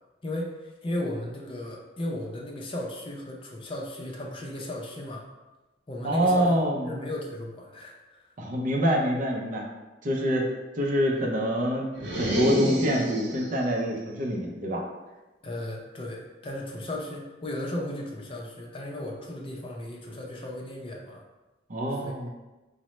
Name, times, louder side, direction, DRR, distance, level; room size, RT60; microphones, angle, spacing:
voice 1, 0.2-5.3 5.9-8.2 15.4-21.2 21.9-22.3, left 1 dB, 30° left, -1 dB, 0.5 m, -35 dB
voice 2, 6.0-6.9 8.4-9.6 10.0-14.8 21.7-22.3, equal, 45° right, 0 dB, 0.6 m, -26 dB
sound 1, 11.9-13.6, equal, 80° right, 0.8 m, -28 dB
5.1 x 2.1 x 3.0 m, 1.1 s
head